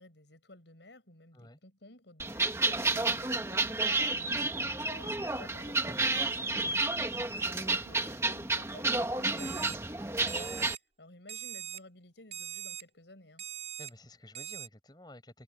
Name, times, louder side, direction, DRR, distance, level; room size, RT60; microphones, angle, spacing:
voice 1, 0.0-10.7 11.0-13.4, left 2 dB, 85° left, 6.3 m, -54 dB
sound 1, 2.2-10.7, right 2 dB, 15° right, 1.7 m, -31 dB
Alarm, 9.4-9.8 10.3-10.8 11.3-11.8 12.3-12.8 13.4-13.9 14.4-14.7, right 10 dB, 35° right, 5.8 m, -41 dB
voice 2, 13.8-15.4, left 1 dB, 25° left, 6.4 m, -52 dB
head